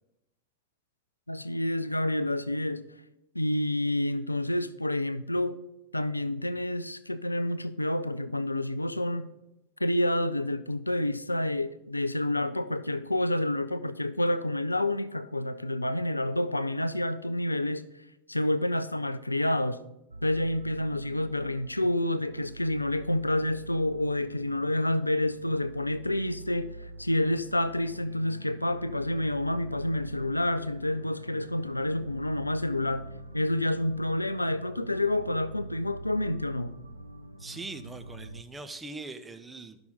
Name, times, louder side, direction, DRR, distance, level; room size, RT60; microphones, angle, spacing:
voice 1, 1.3-2.8 3.3-5.6 5.9-9.3 9.8-17.9 18.3-19.8 20.2-33.1 33.3-36.8, left 1 dB, 85° left, 0.3 m, -29 dB
sound 1, 20.1-38.4, right 2 dB, 85° right, 0.5 m, -44 dB
voice 2, 37.4-39.8, right 3 dB, 10° right, 0.7 m, -41 dB
11.5 x 5.8 x 3.9 m
figure-of-eight pair, 90°, 0 cm